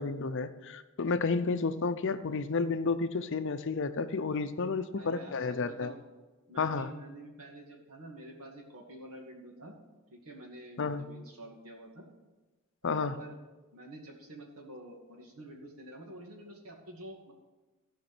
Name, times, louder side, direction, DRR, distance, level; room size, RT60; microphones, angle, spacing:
voice 1, 0.0-5.9 6.6-6.9 10.8-11.0 12.8-13.2, left 4 dB, 60° left, 11 dB, 0.6 m, -31 dB
voice 2, 5.0-6.0 6.5-9.7 10.1-12.1 12.8-13.4 13.7-17.3, right 1 dB, 85° right, 1 dB, 2.3 m, -48 dB
15.5 x 5.2 x 6.0 m, 1.2 s
head